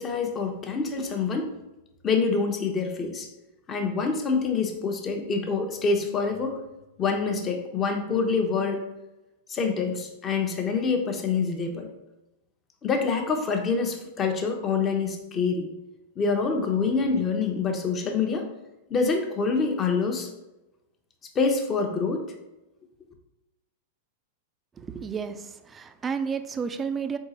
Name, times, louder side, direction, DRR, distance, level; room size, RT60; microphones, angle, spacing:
voice 1, 0.0-1.5 2.0-3.3 3.7-6.6 7.0-8.8 9.5-11.9 12.8-15.7 16.2-18.4 18.9-20.3 21.3-22.2, left 4 dB, 30° left, 4 dB, 0.7 m, -26 dB
voice 2, 24.8-27.2, right 6 dB, 20° right, 10 dB, 0.3 m, -31 dB
3.9 x 3.6 x 2.9 m, 0.97 s
hypercardioid pair, 110°, 0 cm